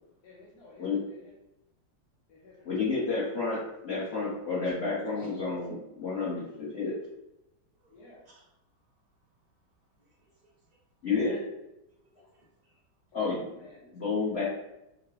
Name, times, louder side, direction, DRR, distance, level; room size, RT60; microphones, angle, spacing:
voice 1, 0.2-1.3 2.3-3.0 7.9-8.2 13.1-14.4, left 1 dB, 65° left, -6 dB, 1.2 m, -53 dB
voice 2, 2.6-3.6 3.8-6.9 11.0-11.4 13.1-13.4 13.9-14.4, left 4 dB, 40° left, -10 dB, 1.1 m, -30 dB
voice 3, 7.8-8.5 10.0-10.5 12.0-12.8, right 1 dB, 45° right, -8 dB, 0.6 m, -62 dB
4.8 x 2.2 x 3.2 m, 0.89 s
omnidirectional pair, 2.1 m